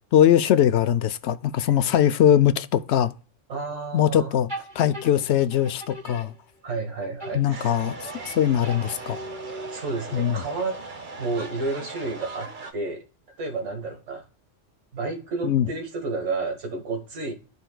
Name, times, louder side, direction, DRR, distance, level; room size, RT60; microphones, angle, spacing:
voice 1, 0.1-3.1 3.9-4.5 4.8-6.3 7.3-9.2 10.1-10.4 15.4-15.7, left 10 dB, 65° left, 0.8 m, -21 dB
voice 2, 3.5-4.3 6.6-7.8 9.7-10.8 11.2-13.0 13.4-14.2 14.9-17.3, right 3 dB, 65° right, 1.7 m, -31 dB
sound 1, 4.5-6.9 7.2-10.0, right 1 dB, 20° right, 1.3 m, -40 dB
sound 2, 7.5-12.7, right 3 dB, 40° right, 1.1 m, -39 dB
13.0 x 4.5 x 2.3 m
omnidirectional pair, 1.3 m